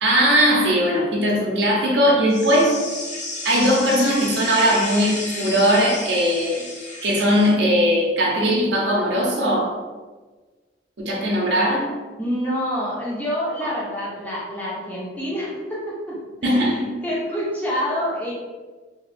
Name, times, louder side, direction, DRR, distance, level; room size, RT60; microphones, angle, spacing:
voice 1, 0.0-2.7 3.4-6.6 7.0-9.7 11.0-11.9 13.6-13.7 16.4-16.9, equal, 70° right, -2 dB, 0.6 m, -19 dB
sound 1, 2.3-7.5, left 2 dB, 45° left, 0.7 m, -32 dB
voice 2, 12.2-15.6 16.1-16.2 16.4-16.7 17.0-18.3, equal, 10° left, -8 dB, 0.8 m, -27 dB
2.9 x 2.3 x 3.3 m, 1.3 s
head